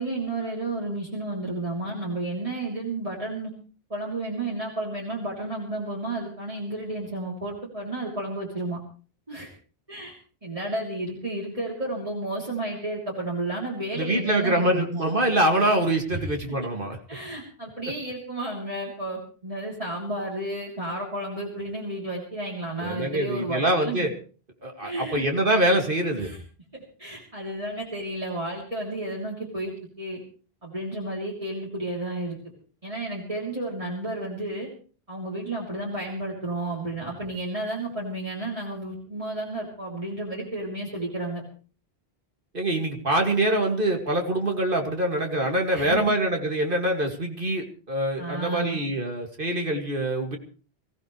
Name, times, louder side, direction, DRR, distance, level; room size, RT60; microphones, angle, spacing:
voice 1, 0.0-3.5 3.9-8.8 9.3-9.5 9.9-14.8 16.1-16.3 17.1-24.1 24.8-25.2 26.2-26.4 26.7-30.2 30.6-32.4 32.8-34.7 35.1-41.4 45.7-46.1 48.2-48.8, right 2 dB, 30° right, -4 dB, 3.4 m, -32 dB
voice 2, 13.9-17.0 22.8-24.1 24.6-26.3 42.5-50.4, right 1 dB, 55° right, 3 dB, 2.4 m, -24 dB
23.5 x 15.5 x 3.2 m, 0.39 s
omnidirectional pair, 1.1 m